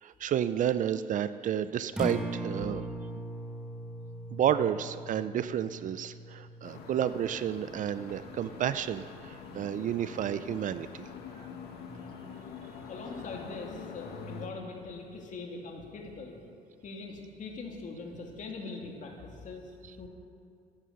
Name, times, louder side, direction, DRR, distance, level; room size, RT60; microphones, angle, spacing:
voice 1, 0.0-2.9 4.3-11.1, right 9 dB, 50° right, 13 dB, 0.5 m, -31 dB
Acoustic guitar, 1.8-10.0, right 1 dB, 5° right, 1.3 m, -41 dB
sound 1, 6.6-14.5, left 5 dB, 75° left, 1.8 m, -45 dB
voice 2, 12.9-16.4 16.8-20.1, left 3 dB, 50° left, 0 dB, 2.6 m, -42 dB
14.5 x 9.9 x 6.4 m, 2.4 s
cardioid pair, 110°, 17 cm